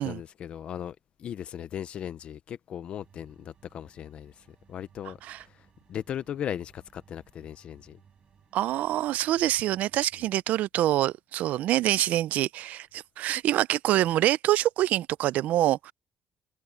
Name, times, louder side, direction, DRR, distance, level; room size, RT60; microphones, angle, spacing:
voice 1, 0.0-8.0, left 9 dB, 45° left, 0.5 m, -38 dB
sound 1, 3.0-10.1, right 7 dB, 35° right, 6.2 m, -61 dB
voice 2, 8.5-15.9, right 14 dB, 70° right, 0.4 m, -25 dB
cardioid pair, 180°, 3 cm